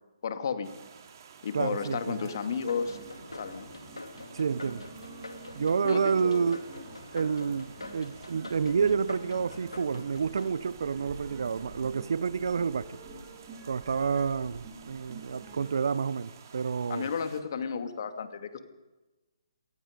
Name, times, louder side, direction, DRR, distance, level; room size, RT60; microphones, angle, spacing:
voice 1, 0.2-0.7 1.4-3.0 3.3-3.7 5.8-6.5 16.9-18.6, left 6 dB, 55° left, 2.3 m, -33 dB
sound 1, 0.6-17.4, right 6 dB, 50° right, 2.9 m, -53 dB
voice 2, 1.5-2.3 4.3-4.8 5.5-6.6 7.1-13.0 13.7-17.1, right 6 dB, 65° right, 0.8 m, -29 dB
sound 2, 1.7-15.7, right 3 dB, 25° right, 6.6 m, -48 dB
sound 3, 2.7-11.8, left 2 dB, 90° left, 2.4 m, -46 dB
27.5 x 18.5 x 5.2 m
figure-of-eight pair, 140°, 2 cm